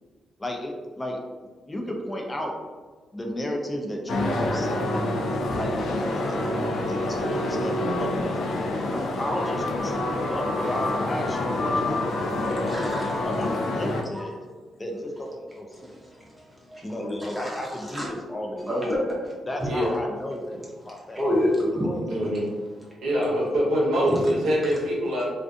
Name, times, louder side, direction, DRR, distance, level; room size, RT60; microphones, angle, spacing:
voice 1, 0.4-1.2 1.7-2.5 3.1-4.9 5.5-8.4 8.8-12.8 13.2-14.4 14.8-16.0 16.8-19.0 19.5-21.2 21.8-22.0 22.7-22.8, equal, 15° left, 1 dB, 0.4 m, -33 dB
sound 1, 4.1-14.0, left 2 dB, 80° left, 0.3 m, -27 dB
voice 2, 12.5-13.2 14.1-14.2 15.8-16.1 16.7-17.6 17.9-18.1 18.7-19.0 19.6-19.7 21.1-21.9 24.0-24.2, equal, 15° right, -5 dB, 0.7 m, -28 dB
voice 3, 22.1-22.4 23.0-25.2, equal, 75° right, -4 dB, 0.9 m, -24 dB
2.5 x 2.4 x 2.4 m, 1.4 s
cardioid pair, 120°, 0 cm